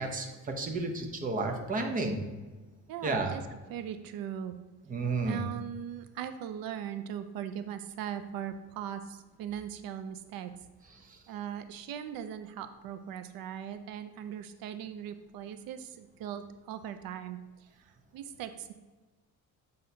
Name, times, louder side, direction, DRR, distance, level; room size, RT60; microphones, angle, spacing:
voice 1, 0.0-2.2 3.0-3.3 4.9-5.4 11.0-11.2, right 3 dB, 25° right, 4 dB, 0.7 m, -32 dB
voice 2, 2.9-3.4 3.7-4.6 5.2-10.5 11.3-18.7, right 9 dB, 80° right, 10 dB, 0.5 m, -39 dB
7.8 x 5.4 x 2.7 m, 1.3 s
cardioid pair, 155°, 34 cm